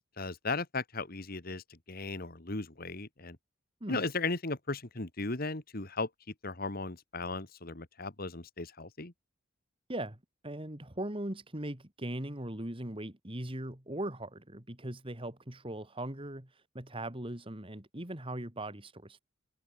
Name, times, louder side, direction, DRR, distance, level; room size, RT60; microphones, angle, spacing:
voice 1, 0.2-3.4 3.9-6.1 6.4-9.1, left 3 dB, 50° left, 2.1 m, -36 dB
voice 2, 10.4-19.2, right 1 dB, 30° right, 2.6 m, -39 dB
head